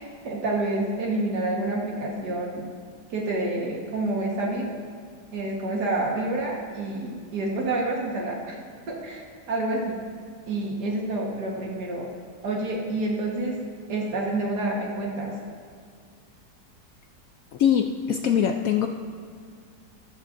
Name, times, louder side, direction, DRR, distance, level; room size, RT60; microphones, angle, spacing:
voice 1, 0.0-2.7 3.1-4.7 5.3-8.6 8.9-10.0 10.5-12.1 12.4-13.6 13.9-15.4, right 2 dB, 85° right, -2 dB, 2.0 m, -28 dB
voice 2, 17.6-18.9, left 8 dB, 70° left, 4 dB, 0.9 m, -22 dB
14.0 x 12.5 x 2.6 m, 2.1 s
omnidirectional pair, 1.7 m